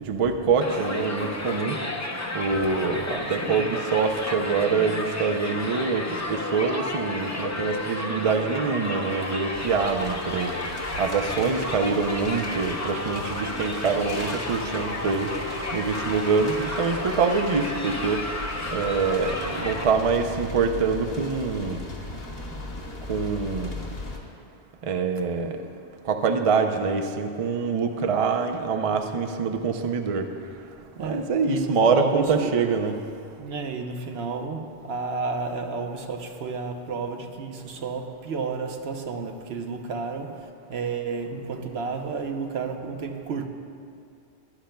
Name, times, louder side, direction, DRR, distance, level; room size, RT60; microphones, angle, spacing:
voice 1, 0.1-1.8 2.3-10.6 11.0-15.3 15.7-18.2 18.7-21.8 23.1-23.7 24.8-25.6 26.1-30.3 31.0-32.9, right 5 dB, 45° right, 0.5 m, -25 dB
Crowd, 0.6-19.8, left 2 dB, 20° left, 0.5 m, -32 dB
voice 2, 2.8-3.8 10.9-11.0 31.0-32.5 33.4-43.5, right 4 dB, 70° right, 1.0 m, -32 dB
sound 1, 9.5-24.2, left 2 dB, 60° left, 1.6 m, -38 dB
16.0 x 11.5 x 2.2 m
omnidirectional pair, 1.1 m